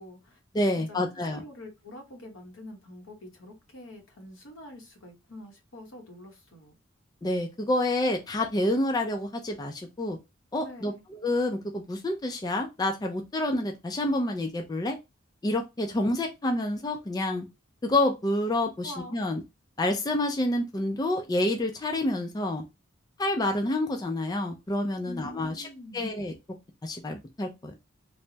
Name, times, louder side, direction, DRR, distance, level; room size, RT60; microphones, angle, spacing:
voice 1, 0.0-0.4 0.8-6.8 10.6-11.0 18.8-19.2 25.0-26.1, left 1 dB, 90° left, 2 dB, 1.0 m, -45 dB
voice 2, 0.5-1.4 7.2-10.2 10.5-15.0 15.4-17.5 17.8-19.4 19.8-22.6 23.2-25.7 25.9-26.3 26.8-27.7, left 1 dB, 20° left, 3 dB, 0.4 m, -28 dB
3.3 x 2.0 x 2.7 m, 0.23 s
head